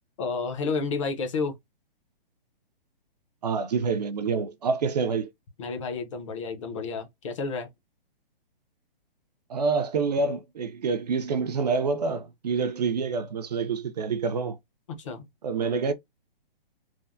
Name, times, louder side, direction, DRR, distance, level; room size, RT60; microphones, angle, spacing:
voice 1, 0.2-1.6 5.6-7.7 14.9-15.3, left 4 dB, 35° left, 0.6 m, -31 dB
voice 2, 3.4-5.3 9.5-14.6 15.4-15.9, right 5 dB, 45° right, 0.4 m, -27 dB
3.3 x 2.0 x 2.5 m
hypercardioid pair, 165°, 29 cm